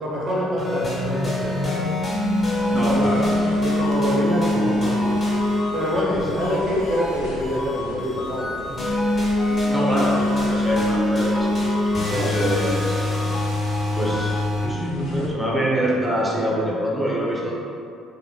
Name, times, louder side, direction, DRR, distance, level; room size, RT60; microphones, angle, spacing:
voice 1, 0.0-2.0 2.7-3.1 3.6-5.2 5.7-8.8 12.1-12.4, equal, 45° right, -4 dB, 0.6 m, -26 dB
sound 1, 0.6-14.7, left 1 dB, 30° left, 0.8 m, -23 dB
sound 2, 2.1-15.3, left 1 dB, 70° left, 0.4 m, -39 dB
voice 2, 2.7-3.5 6.1-6.4 9.7-13.3 13.9-17.5, equal, ahead, -5 dB, 0.6 m, -25 dB
2.7 x 2.7 x 2.2 m, 2.4 s
figure-of-eight pair, 50°, 0 cm